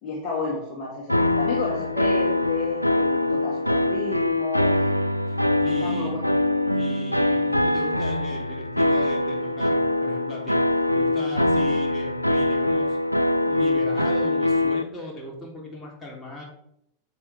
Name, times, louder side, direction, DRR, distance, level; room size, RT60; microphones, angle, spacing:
voice 1, 0.0-4.8 5.8-6.4, left 3 dB, 30° left, -3 dB, 2.1 m, -32 dB
sound 1, 1.1-14.8, left 1 dB, 90° left, 0.4 m, -23 dB
voice 2, 5.3-6.2 6.7-13.0 13.4-16.4, left 2 dB, 15° left, -2 dB, 3.5 m, -38 dB
9.4 x 7.8 x 3.5 m, 0.74 s
figure-of-eight pair, 90°, 0 cm